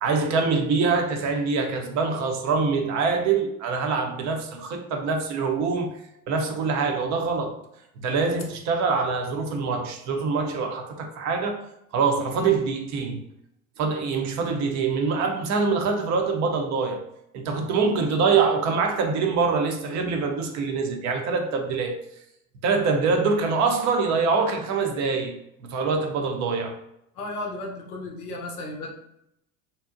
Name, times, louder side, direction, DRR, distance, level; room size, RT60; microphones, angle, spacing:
voice 1, 0.0-6.0 6.3-7.6 8.0-11.6 11.9-13.2 13.8-17.0 17.3-22.0 22.6-26.8, right 4 dB, 40° right, 0.5 m, -24 dB
voice 2, 27.1-29.0, left 2 dB, 85° left, 0.6 m, -34 dB
2.6 x 2.0 x 2.4 m
hypercardioid pair, 75°, 44 cm